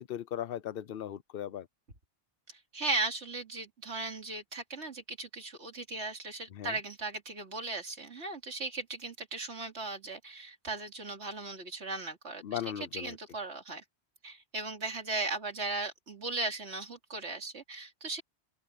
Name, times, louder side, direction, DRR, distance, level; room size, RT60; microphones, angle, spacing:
voice 1, 0.0-1.7 6.5-6.8 12.4-13.2, left 10 dB, 60° left, 0.9 m, -38 dB
voice 2, 2.5-12.6 12.9-13.8 14.2-18.2, right 3 dB, 80° right, 3.0 m, -37 dB
open air
omnidirectional pair, 1.1 m